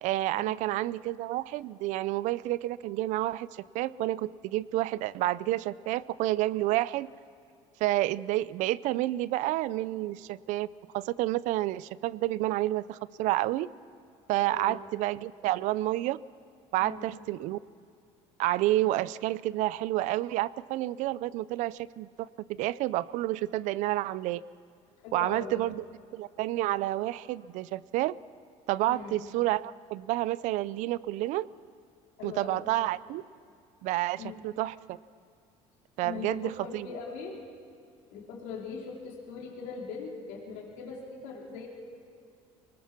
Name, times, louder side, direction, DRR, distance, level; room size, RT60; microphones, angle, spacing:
voice 1, 0.0-3.5 3.7-7.1 7.8-10.7 10.9-13.7 14.3-16.2 16.7-17.6 18.4-22.3 22.6-24.4 25.1-25.8 26.1-28.1 28.7-31.5 32.2-33.2 33.8-35.0 36.0-36.9, right 16 dB, 70° right, 19 dB, 0.5 m, -29 dB
voice 2, 14.4-14.8 16.8-17.1 25.0-25.7 28.9-29.1 32.2-32.7 34.2-34.4 36.0-37.4 38.1-41.7, left 5 dB, 80° left, -1 dB, 3.6 m, -41 dB
24.5 x 20.0 x 5.9 m, 2.4 s
cardioid pair, 110°, 13 cm